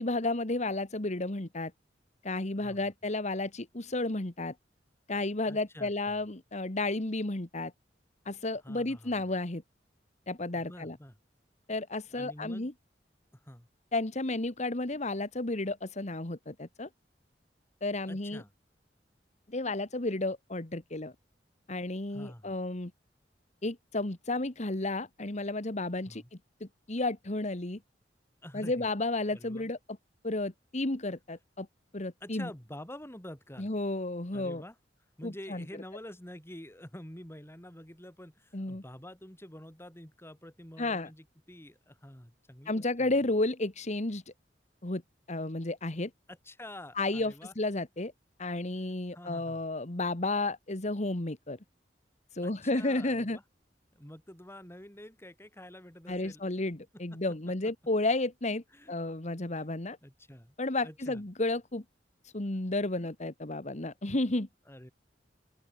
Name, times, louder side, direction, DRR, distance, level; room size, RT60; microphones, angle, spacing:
voice 1, 0.0-1.7 2.2-4.5 5.1-7.7 8.2-9.6 10.3-11.0 11.7-12.7 13.9-16.9 17.8-18.4 19.5-21.1 21.7-22.9 23.6-27.8 28.5-29.8 30.2-31.7 31.9-32.5 33.6-34.6 35.2-35.6 38.5-38.8 40.8-41.1 42.6-44.2 44.8-45.0 45.3-46.1 46.9-48.1 48.4-51.6 52.3-53.4 56.1-60.0 60.6-61.8 62.2-64.5, left 2 dB, 40° left, 1.7 m, -32 dB
voice 2, 5.5-6.2 8.6-9.3 10.5-11.1 12.1-12.7 13.3-13.7 18.1-18.5 22.1-22.6 26.1-26.3 28.4-28.9 29.3-29.7 32.2-33.7 34.3-34.8 35.2-43.1 46.3-47.5 49.1-49.6 52.4-53.4 53.9-56.5 57.1-57.2 58.7-58.9 59.5-59.6 60.0-60.5 60.8-61.2 64.7-64.9, left 1 dB, 15° left, 5.7 m, -48 dB
open air
head